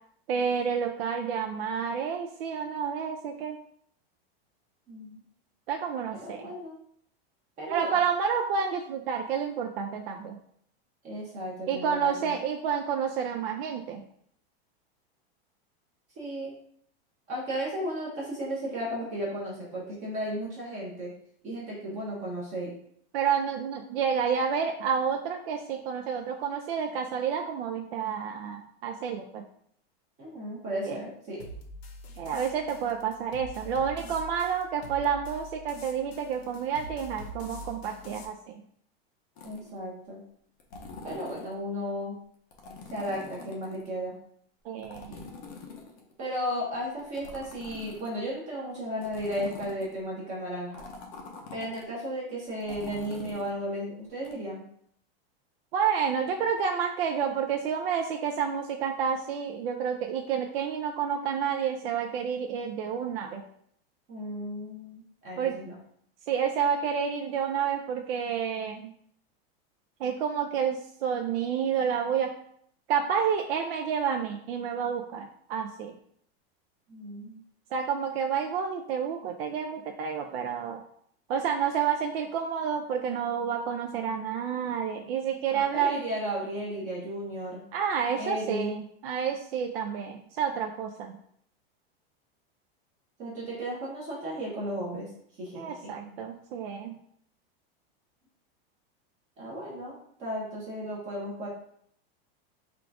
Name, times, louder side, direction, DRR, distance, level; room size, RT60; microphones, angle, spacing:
voice 1, 0.3-3.6 5.7-6.5 7.7-10.4 11.7-14.0 23.1-29.4 30.9-31.0 32.2-38.6 44.6-45.1 55.7-63.4 65.4-65.6 66.3-68.9 70.0-72.3 72.9-75.9 77.7-80.8 81.3-86.0 87.7-91.2 95.5-96.9, right 7 dB, 70° right, 3 dB, 0.5 m, -29 dB
voice 2, 4.9-5.2 6.1-6.8 7.6-7.9 11.0-12.4 16.2-16.5 17.3-21.1 21.4-22.8 30.2-31.4 39.4-40.2 41.0-42.2 42.9-44.1 45.1-45.2 46.2-50.8 51.5-54.6 64.1-65.7 76.9-77.4 85.5-87.6 88.2-88.7 93.2-95.1 95.4-95.9 99.4-101.5, equal, 25° right, -4 dB, 0.8 m, -34 dB
sound 1, 31.4-38.2, equal, 90° left, 0.9 m, -44 dB
sound 2, 39.4-39.8 40.6-41.6 42.5-43.9 44.8-46.3 47.0-48.3 49.0-50.0 50.7-51.8 52.6-53.5 54.2-54.3, left 4 dB, 25° left, 0.5 m, -44 dB
3.8 x 2.4 x 4.5 m, 0.65 s
supercardioid pair, 175°, 31 cm